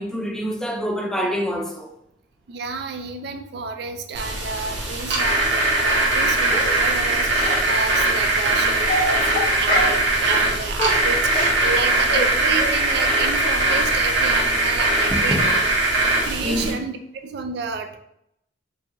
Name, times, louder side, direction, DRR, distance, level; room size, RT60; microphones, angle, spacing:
voice 1, 0.0-1.9 15.1-15.5 16.1-16.7, equal, 5° left, 0.6 m, -26 dB
voice 2, 2.5-15.4 16.2-17.0 17.2-18.0, right 4 dB, 60° right, 0.4 m, -30 dB
sound 1, 4.1-16.7, right 2 dB, 75° right, 1.3 m, -21 dB
Dog, 6.5-6.8 7.4-7.6 8.4-8.5 8.8-10.0 10.3-10.5 10.8-12.3 12.6-12.7 13.0-13.1 13.4-13.5 13.9-14.0 14.4-14.5 14.7-14.8, equal, 50° left, 1.3 m, -26 dB
4.5 x 2.5 x 3.0 m
head